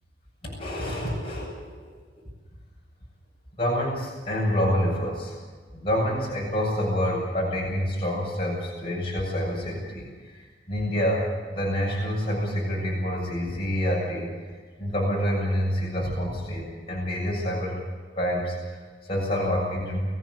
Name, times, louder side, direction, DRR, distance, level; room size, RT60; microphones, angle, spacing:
voice 1, 0.4-1.9 2.2-2.3 3.6-5.4 5.7-14.3 14.8-17.8 18.2-20.0, equal, 30° left, -4 dB, 7.3 m, -27 dB
24.5 x 15.5 x 8.2 m, 1.5 s
head